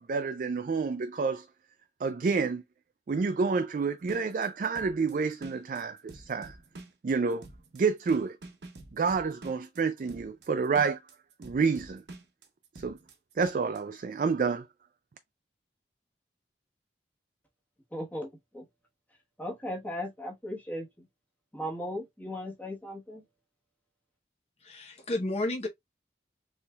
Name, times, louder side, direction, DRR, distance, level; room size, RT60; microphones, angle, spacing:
voice 1, 0.0-1.5 2.0-2.6 3.1-6.6 7.0-7.4 7.7-8.4 9.0-11.0 11.4-12.0 12.8-13.0 13.4-14.7, right 5 dB, 50° right, 0.3 m, -29 dB
sound 1, 4.0-13.8, right 2 dB, 75° right, 0.8 m, -48 dB
voice 2, 17.9-18.7 19.4-21.1 21.5-23.2, equal, 10° left, 1.2 m, -37 dB
voice 3, 24.6-25.7, left 2 dB, 35° left, 0.8 m, -31 dB
4.3 x 3.3 x 2.2 m
head